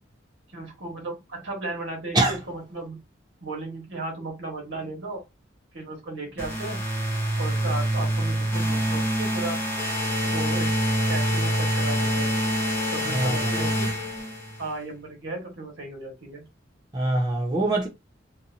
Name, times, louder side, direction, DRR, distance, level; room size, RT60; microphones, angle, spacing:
voice 1, 0.5-3.0 3.4-5.2 5.7-6.8 7.4-9.6 10.3-10.7 11.1-12.3 12.9-13.9 14.6-16.4, right 2 dB, 80° right, 1.3 m, -35 dB
sound 1, 6.4-14.7, right 1 dB, 15° left, 0.7 m, -26 dB
voice 2, 16.9-17.9, right 2 dB, 20° right, 0.6 m, -23 dB
2.7 x 2.5 x 2.6 m
head